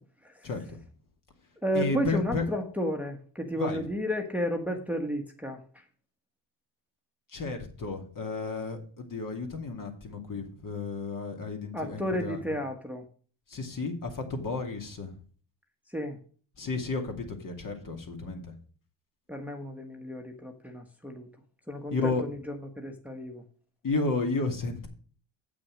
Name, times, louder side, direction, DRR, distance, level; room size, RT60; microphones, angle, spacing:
voice 1, 0.4-0.8 1.7-2.5 3.5-3.8 7.3-12.6 13.5-15.1 16.6-18.5 21.9-22.2 23.8-24.9, left 3 dB, 45° left, 4 dB, 2.4 m, -32 dB
voice 2, 1.6-5.8 11.7-13.0 15.9-16.2 19.3-21.3 21.7-23.4, equal, 5° right, 2 dB, 1.3 m, -33 dB
7.8 x 6.2 x 6.3 m, 0.43 s
cardioid pair, 90°, 46 cm